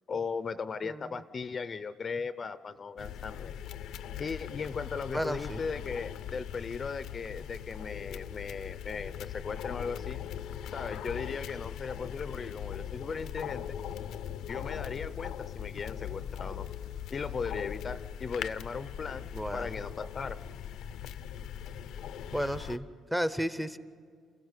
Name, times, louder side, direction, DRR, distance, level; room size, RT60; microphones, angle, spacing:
voice 1, 0.1-3.5 4.2-10.2 10.7-13.8 14.5-16.7 17.1-20.4, left 5 dB, 35° left, 14 dB, 0.5 m, -37 dB
sound 1, 3.0-22.8, left 9 dB, 80° left, 0.6 m, -40 dB
voice 2, 5.1-5.6 19.3-19.7 22.3-23.8, equal, 5° right, 13 dB, 0.7 m, -33 dB
28.5 x 16.0 x 8.2 m, 2.1 s
cardioid pair, 115°, 0 cm